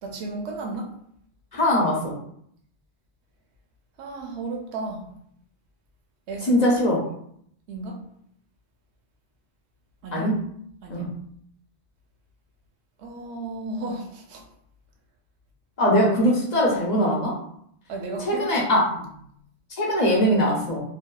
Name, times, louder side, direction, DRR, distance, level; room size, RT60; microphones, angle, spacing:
voice 1, 0.0-0.9 4.0-5.1 6.3-6.6 7.7-8.0 10.0-10.3 10.8-11.1 13.0-14.4 17.9-18.6 18.9-19.0, right 3 dB, 80° right, 2 dB, 0.9 m, -34 dB
voice 2, 1.5-2.0 6.5-7.0 10.1-10.3 10.9-11.1 15.8-17.3 18.2-18.8 19.8-20.8, equal, 50° left, -3 dB, 0.6 m, -21 dB
2.7 x 2.2 x 2.2 m, 0.69 s
omnidirectional pair, 1.1 m